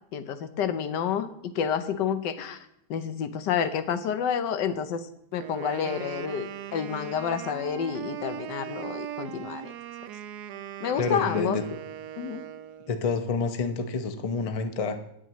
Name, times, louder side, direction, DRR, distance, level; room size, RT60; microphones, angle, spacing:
voice 1, 0.1-9.7 10.8-11.6 12.2-12.4, left 7 dB, 80° left, 10 dB, 1.4 m, -29 dB
Wind instrument woodwind instrument, 5.4-13.0, right 10 dB, 75° right, 1.1 m, -39 dB
voice 2, 11.0-11.6 12.9-15.0, left 4 dB, 50° left, 7 dB, 0.4 m, -28 dB
17.5 x 9.1 x 3.0 m, 0.77 s
omnidirectional pair, 1.9 m